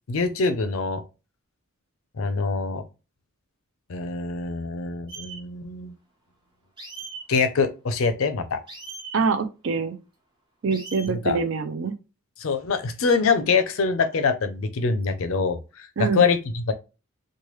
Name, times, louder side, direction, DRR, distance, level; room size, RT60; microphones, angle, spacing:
voice 1, 0.1-1.0 2.2-2.8 3.9-5.9 7.3-8.6 11.1-11.4 12.4-16.7, left 4 dB, 70° left, 0.5 m, -24 dB
sound 1, 5.1-5.4 6.8-7.2 8.7-9.2 10.7-11.1, right 4 dB, 20° right, 0.9 m, -39 dB
voice 2, 9.1-10.0 10.6-11.9 16.0-16.2, right 5 dB, 60° right, 0.4 m, -25 dB
3.1 x 2.2 x 3.0 m
head